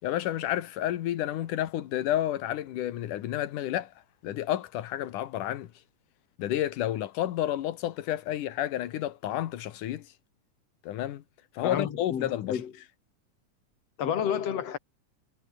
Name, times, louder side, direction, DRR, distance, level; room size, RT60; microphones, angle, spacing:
voice 1, 0.0-3.9 4.2-5.7 6.4-10.1 10.8-11.2 11.5-12.6, left 12 dB, 90° left, 2.8 m, -30 dB
voice 2, 11.6-12.7 14.0-14.8, left 8 dB, 55° left, 3.3 m, -30 dB
omnidirectional pair, 3.6 m